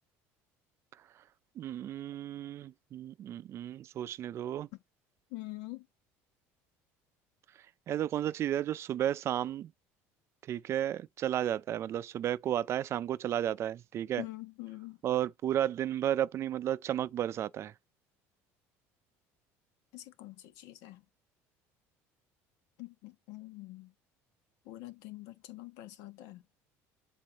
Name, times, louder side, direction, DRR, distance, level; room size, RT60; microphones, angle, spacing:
voice 1, 1.6-4.7 7.9-9.7 10.5-14.2 15.0-17.7, right 11 dB, 45° right, 0.4 m, -33 dB
voice 2, 5.3-5.9 14.2-15.0 19.9-21.0 22.8-23.9 24.6-26.4, left 18 dB, 80° left, 1.2 m, -45 dB
7.5 x 4.2 x 4.0 m
cardioid pair, 115°, 6 cm